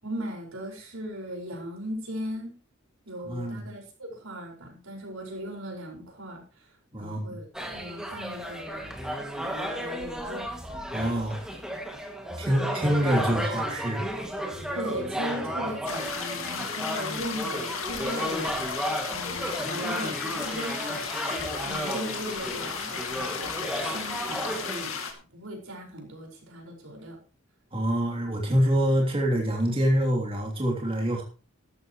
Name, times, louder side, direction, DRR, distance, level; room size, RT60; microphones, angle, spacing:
voice 1, 0.0-2.5 3.1-6.7 7.0-8.9 9.3-10.5 14.7-21.0 21.6-25.0 25.3-27.2, equal, 80° right, -1 dB, 5.4 m, -38 dB
voice 2, 3.3-3.6 6.9-7.4 10.9-11.4 12.4-14.0 27.7-31.2, equal, 25° right, -1 dB, 3.1 m, -25 dB
sound 1, 7.5-24.9, equal, 5° right, 2.2 m, -33 dB
sound 2, 15.9-25.1, left 6 dB, 80° left, 2.5 m, -34 dB
14.0 x 13.0 x 3.1 m, 0.36 s
head